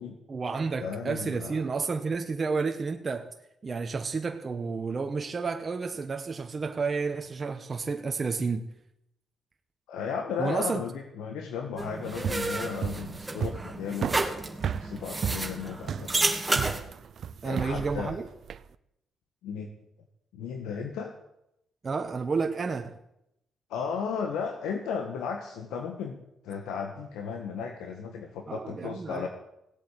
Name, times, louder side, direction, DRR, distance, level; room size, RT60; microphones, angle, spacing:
voice 1, 0.3-3.3 3.6-8.7 10.4-10.8 17.4-18.3 21.8-23.0 28.5-29.3, right 4 dB, 35° right, 1.2 m, -31 dB
voice 2, 0.8-1.6 9.9-14.2 14.6-16.3 17.4-18.2 19.4-19.7 20.3-21.1 23.7-26.2 26.4-29.3, left 6 dB, 90° left, 1.5 m, -35 dB
sound 1, 11.8-16.8, right 2 dB, 15° right, 2.4 m, -31 dB
sound 2, 12.1-18.7, right 7 dB, 60° right, 0.6 m, -34 dB
16.5 x 8.4 x 8.3 m
cardioid pair, 90°, 0 cm